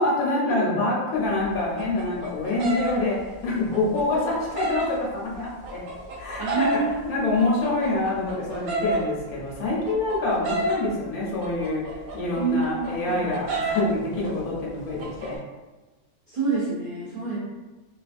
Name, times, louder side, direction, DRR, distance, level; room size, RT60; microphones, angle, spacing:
voice 1, 0.0-3.2 3.4-5.8 6.2-11.8 12.1-15.4, left 2 dB, 80° left, -4 dB, 1.3 m, -26 dB
sound 1, 1.2-4.9 5.3-7.0 7.4-10.9 11.4-13.9 14.2-14.5 14.8-15.4, right 1 dB, 80° right, 1.1 m, -30 dB
voice 2, 6.4-7.4 12.4-13.3 16.3-17.4, right 4 dB, 50° right, -9 dB, 0.6 m, -28 dB
3.2 x 2.3 x 2.5 m, 1.2 s
omnidirectional pair, 1.5 m